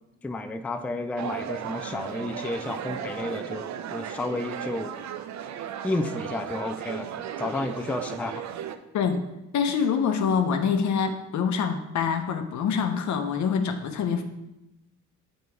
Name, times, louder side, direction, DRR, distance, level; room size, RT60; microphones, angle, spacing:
voice 1, 0.2-4.9 5.8-8.4, left 2 dB, 5° left, 8 dB, 0.3 m, -32 dB
sound 1, 1.2-8.8, right 9 dB, 65° right, 0.5 m, -35 dB
voice 2, 9.5-14.2, left 6 dB, 70° left, 6 dB, 0.8 m, -25 dB
6.7 x 4.1 x 4.7 m, 0.92 s
cardioid pair, 90°, 30 cm